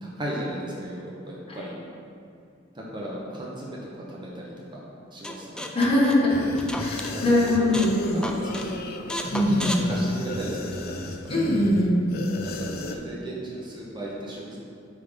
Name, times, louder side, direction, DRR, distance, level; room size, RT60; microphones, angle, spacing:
voice 1, 0.0-1.7 2.7-3.8 4.1-4.8 5.1-5.7 7.1-9.0 9.5-11.2 12.4-14.6, right 1 dB, 25° right, -4 dB, 1.0 m, -36 dB
sound 1, 5.2-7.1 7.5-8.0 8.2-8.7 9.1-10.7, left 1 dB, 5° left, 0.3 m, -33 dB
voice 2, 5.7-8.0 9.3-9.8 11.3-12.1, left 1 dB, 30° left, -5 dB, 1.3 m, -22 dB
sound 2, 6.3-13.0, left 1 dB, 50° left, 0.6 m, -34 dB
8.7 x 3.6 x 5.3 m, 2.4 s
head